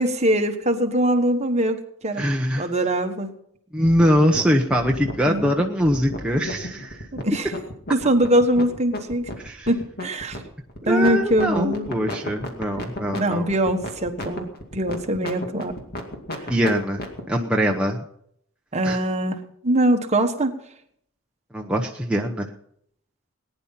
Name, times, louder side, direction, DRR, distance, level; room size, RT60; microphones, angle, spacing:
voice 1, 0.0-1.8 2.0-2.2 2.6-3.3 5.3-5.5 7.1-7.5 7.9-9.3 9.7-10.4 10.8-11.9 13.1-15.7 18.7-20.5, right 1 dB, 30° right, 5 dB, 1.4 m, -22 dB
voice 2, 2.2-2.7 3.7-7.1 9.4-9.7 10.8-13.5 16.5-18.0 18.8-19.0 21.5-22.5, equal, 5° right, 0 dB, 0.9 m, -22 dB
sound 1, 3.8-17.2, left 1 dB, 45° left, 2.3 m, -33 dB
19.5 x 10.0 x 5.8 m, 0.70 s
head